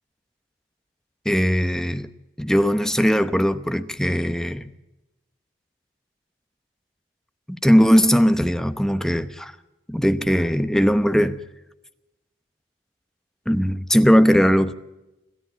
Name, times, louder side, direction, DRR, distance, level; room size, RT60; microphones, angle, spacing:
voice 1, 1.2-2.1 2.4-4.7 7.5-9.5 9.9-11.4 13.5-14.7, equal, 5° left, 0.9 m, -19 dB
26.0 x 14.0 x 7.4 m
head